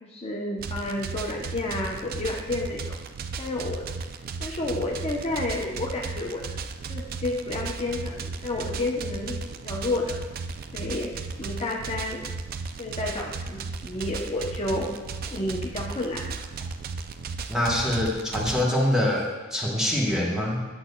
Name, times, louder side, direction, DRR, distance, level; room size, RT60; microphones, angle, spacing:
voice 1, 0.0-3.0 3.4-3.9 4.4-6.6 6.9-9.4 9.6-10.2 10.7-11.1 11.4-12.2 12.8-14.9 15.3-16.4, left 2 dB, 30° left, -2 dB, 0.6 m, -30 dB
sound 1, 0.6-18.6, right 4 dB, 45° right, 0.3 m, -35 dB
voice 2, 17.5-20.7, left 1 dB, 5° right, -3 dB, 1.0 m, -25 dB
8.5 x 7.8 x 2.2 m, 1.2 s
head